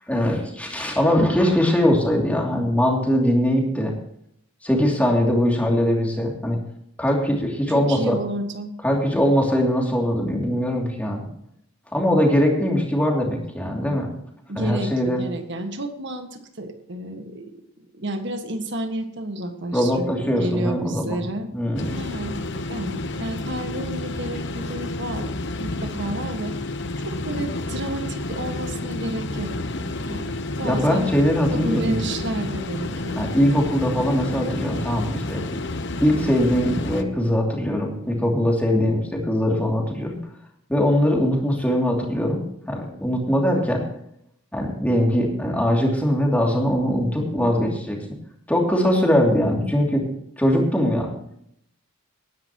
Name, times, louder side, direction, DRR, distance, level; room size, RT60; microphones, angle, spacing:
voice 1, 0.1-3.9 4.6-6.6 7.0-8.2 8.8-11.2 11.9-14.1 14.5-15.2 19.7-21.2 21.5-22.0 30.6-32.0 33.2-35.4 36.0-40.2 40.7-43.8 44.5-48.0 48.5-50.0 50.4-51.1, equal, 5° left, -1 dB, 2.7 m, -21 dB
voice 2, 7.7-8.7 14.5-17.5 17.9-20.1 20.4-21.5 21.9-22.4 22.7-26.5 27.1-29.5 30.1-30.3 30.6-31.1 31.5-33.3, right 1 dB, 55° right, 6 dB, 1.7 m, -30 dB
sound 1, 21.8-37.0, left 2 dB, 55° left, 1.0 m, -30 dB
19.5 x 10.5 x 3.0 m, 0.73 s
head